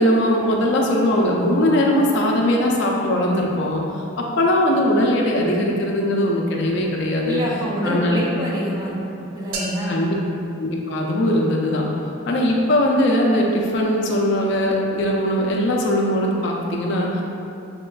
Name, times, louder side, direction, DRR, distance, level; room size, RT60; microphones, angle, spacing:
voice 1, 0.0-7.4 7.8-8.2 9.9-10.1 10.6-11.9 12.3-17.2, left 1 dB, 55° left, -1 dB, 0.4 m, -20 dB
voice 2, 7.2-10.1 11.6-11.8, equal, 20° right, -5 dB, 0.3 m, -27 dB
sound 1, 9.5-11.5, right 2 dB, 90° right, 0.5 m, -35 dB
4.2 x 2.3 x 2.2 m, 2.6 s
head